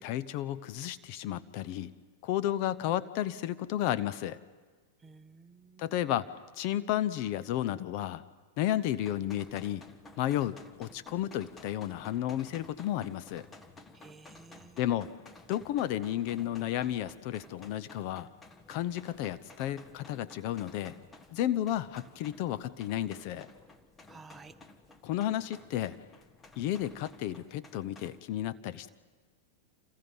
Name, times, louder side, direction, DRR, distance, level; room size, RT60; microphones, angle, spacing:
voice 1, 0.0-2.0 2.2-4.4 5.8-6.3 6.6-8.2 8.6-9.9 10.2-13.5 14.8-15.2 15.5-18.3 18.7-21.0 21.3-23.5 25.0-26.0 26.6-28.9, left 12 dB, 50° left, 13 dB, 0.9 m, -32 dB
voice 2, 5.0-6.0 13.9-14.8 24.1-24.5, right 4 dB, 15° right, 9 dB, 1.2 m, -53 dB
sound 1, 9.0-28.2, left 2 dB, 20° left, 1.6 m, -54 dB
29.0 x 27.5 x 5.6 m, 1.4 s
hypercardioid pair, 105°, 0 cm